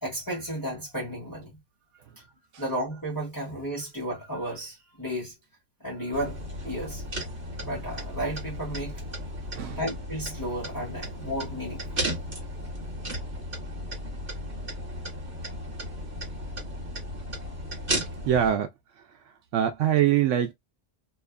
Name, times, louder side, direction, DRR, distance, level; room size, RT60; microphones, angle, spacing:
voice 1, 0.0-1.5 2.2-2.3 2.6-5.3 5.8-7.0 7.6-9.0 9.8-12.1, equal, 20° left, 1.1 m, -33 dB
sound 1, 6.1-18.5, equal, 45° right, 1.4 m, -35 dB
voice 2, 18.2-18.7 19.5-20.5, right 10 dB, 80° right, 0.9 m, -23 dB
2.8 x 2.3 x 2.3 m
omnidirectional pair, 1.3 m